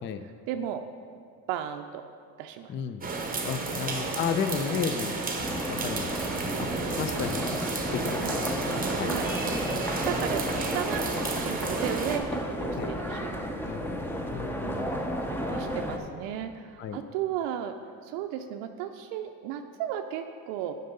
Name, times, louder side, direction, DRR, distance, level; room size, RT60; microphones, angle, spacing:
voice 1, 0.5-0.8 1.5-2.0 2.4-2.7 3.6-3.8 8.2-8.4 9.0-9.3 10.0-11.1 11.3-13.6 14.6-15.0 15.5-17.8 18.0-20.8, right 10 dB, 85° right, 6 dB, 0.5 m, -35 dB
voice 2, 2.7-3.1 3.4-5.1 5.7-6.1 6.6-6.7 7.0-7.5 7.9-8.5 8.9-9.2 12.8-12.9 13.6-15.1 16.8-17.0, left 7 dB, 30° left, 10 dB, 0.4 m, -33 dB
sound 1, 3.0-12.2, right 3 dB, 20° right, 0.9 m, -32 dB
sound 2, 5.4-16.0, equal, 5° left, 0.7 m, -33 dB
7.6 x 5.4 x 5.3 m, 2.2 s
supercardioid pair, 95°, 41 cm